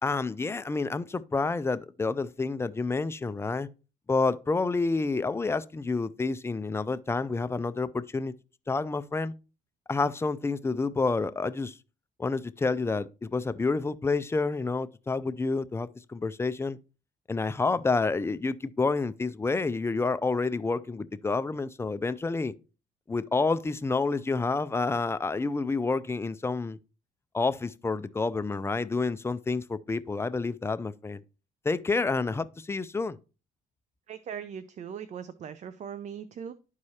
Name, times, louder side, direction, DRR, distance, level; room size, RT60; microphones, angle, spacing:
voice 1, 0.0-3.7 4.1-8.3 8.7-9.3 9.9-11.8 12.2-16.8 17.3-22.5 23.1-26.8 27.3-31.2 31.6-33.2, left 3 dB, 15° left, 0.4 m, -29 dB
voice 2, 34.1-36.5, right 8 dB, 45° right, 0.6 m, -39 dB
11.5 x 4.8 x 2.8 m
cardioid pair, 110°, 17 cm